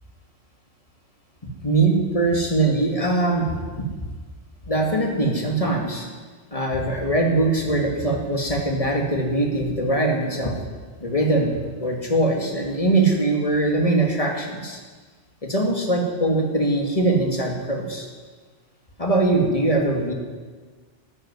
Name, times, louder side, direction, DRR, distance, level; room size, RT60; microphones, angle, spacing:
voice 1, 1.4-3.9 4.7-6.1 6.5-10.5 11.0-14.8 15.4-18.1 19.0-20.1, right 2 dB, 35° left, 1 dB, 2.6 m, -22 dB
13.5 x 10.0 x 9.8 m, 1.4 s
omnidirectional pair, 1.1 m